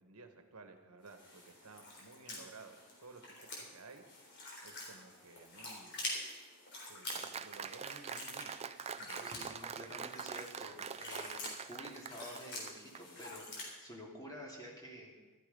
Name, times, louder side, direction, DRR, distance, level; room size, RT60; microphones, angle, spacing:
voice 1, 0.0-4.0 4.6-6.1 6.9-8.5 9.0-9.3, right 3 dB, 75° right, 7 dB, 1.4 m, -55 dB
sound 1, 1.0-13.7, left 2 dB, 55° left, 3.8 m, -47 dB
Applause, 7.1-13.0, right 6 dB, 30° right, 0.4 m, -44 dB
voice 2, 9.2-15.1, equal, 15° left, -2 dB, 2.8 m, -50 dB
14.0 x 12.5 x 5.4 m, 1.3 s
head